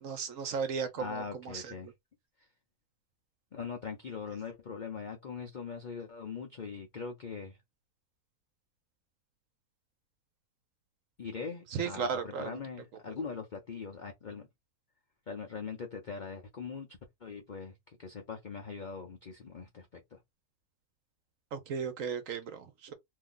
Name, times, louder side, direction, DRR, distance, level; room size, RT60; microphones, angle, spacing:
voice 1, 0.0-1.2 1.5-1.6 11.7-12.5 21.5-22.9, right 6 dB, 65° right, 0.9 m, -35 dB
voice 2, 0.7-1.9 3.5-7.6 11.2-14.5 15.3-20.2, left 5 dB, 65° left, 0.4 m, -41 dB
2.8 x 2.6 x 3.7 m
omnidirectional pair, 1.7 m